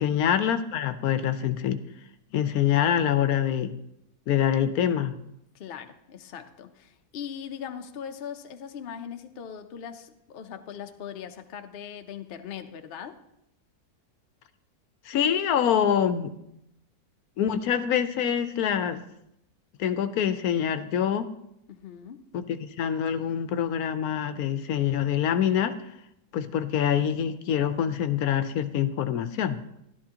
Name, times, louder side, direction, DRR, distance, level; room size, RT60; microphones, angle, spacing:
voice 1, 0.0-1.8 2.3-3.7 4.3-5.2 15.0-16.3 17.4-19.0 19.8-21.3 22.3-25.8 26.3-29.6, left 9 dB, 75° left, 11 dB, 1.1 m, -25 dB
voice 2, 5.5-13.2 21.7-22.3, left 8 dB, 55° left, 7 dB, 0.7 m, -40 dB
13.0 x 12.0 x 2.8 m, 0.80 s
omnidirectional pair, 1.6 m